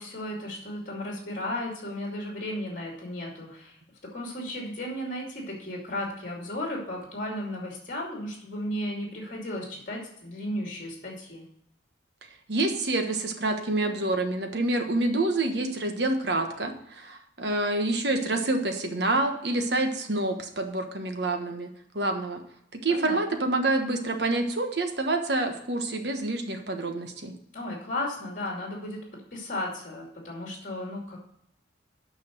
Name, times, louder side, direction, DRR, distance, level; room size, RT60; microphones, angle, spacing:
voice 1, 0.0-3.8 4.1-11.4 22.9-23.2 27.5-29.0 29.3-31.2, left 1 dB, 45° left, -1 dB, 2.5 m, -34 dB
voice 2, 12.5-21.7 21.9-22.4 22.8-27.3, right 2 dB, 60° right, 5 dB, 1.3 m, -27 dB
9.0 x 5.7 x 6.3 m, 0.73 s
head